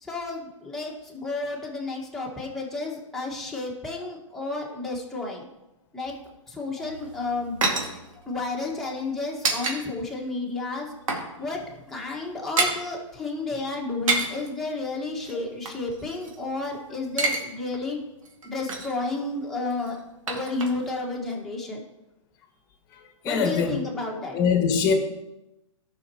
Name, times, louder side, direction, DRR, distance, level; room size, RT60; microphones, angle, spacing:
voice 1, 0.0-5.5 5.9-6.1 6.5-7.6 8.3-10.9 11.4-11.6 11.9-18.0 18.4-20.0 20.3-21.8 23.2-24.4, left 3 dB, ahead, -4 dB, 1.7 m, -31 dB
sound 1, 6.8-9.8 10.1-10.3 10.6-11.3 11.6-11.7 12.0-12.8 13.8-14.5 15.2-16.7 17.0-17.4 17.7-17.8 18.2-19.0 19.7-21.0 21.3-21.4, right 3 dB, 80° right, 2.2 m, -29 dB
voice 2, 22.9-23.8 24.3-24.9, left 6 dB, 20° left, 3 dB, 1.5 m, -24 dB
15.0 x 6.0 x 3.0 m, 0.95 s
hypercardioid pair, 150°, 17 cm